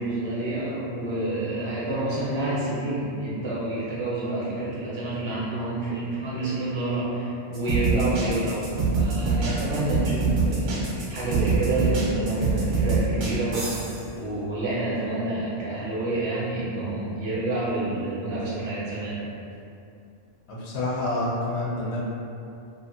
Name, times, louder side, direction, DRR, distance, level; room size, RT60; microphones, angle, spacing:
voice 1, 0.0-19.2, right 2 dB, 30° right, -9 dB, 0.5 m, -28 dB
sound 1, 7.5-14.0, right 4 dB, 70° right, 1.0 m, -24 dB
voice 2, 20.5-22.0, left 2 dB, 65° left, -5 dB, 0.8 m, -28 dB
2.5 x 2.5 x 2.6 m, 2.6 s
omnidirectional pair, 1.3 m